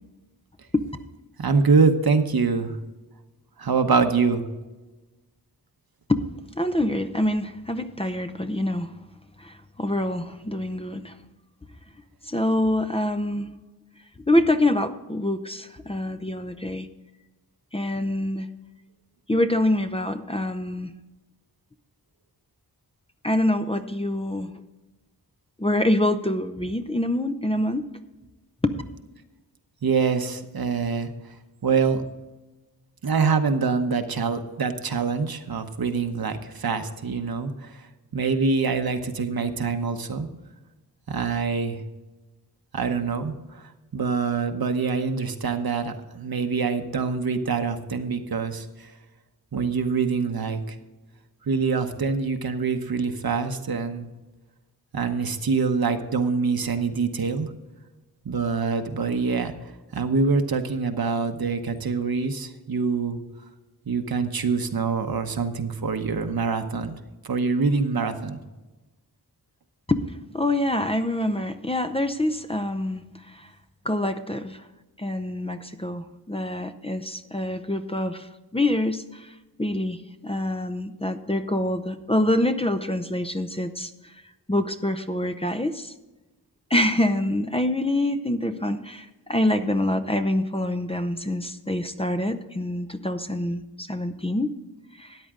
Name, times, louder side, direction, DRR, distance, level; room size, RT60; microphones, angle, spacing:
voice 1, 1.4-2.7 3.6-4.4 29.8-31.1 31.6-32.0 33.0-37.7 38.1-40.3 41.1-41.8 42.7-43.3 43.9-48.6 49.5-50.6 51.5-54.1 54.9-57.5 58.2-59.5 59.9-63.2 63.9-66.9 67.2-68.4, right 5 dB, 70° right, 7 dB, 1.0 m, -25 dB
voice 2, 6.6-8.9 9.4-11.1 12.3-13.5 14.3-16.9 17.7-18.5 19.3-20.9 23.2-24.5 25.6-27.8 28.6-28.7 69.9-70.0 70.3-73.0 73.3-73.5 73.8-74.6 75.0-78.3 78.5-79.3 79.6-83.9 84.5-85.9 86.7-94.5 95.0-95.2, left 1 dB, 15° left, 9 dB, 0.6 m, -25 dB
13.5 x 9.4 x 3.7 m, 1.1 s
wide cardioid pair, 85°, 38 cm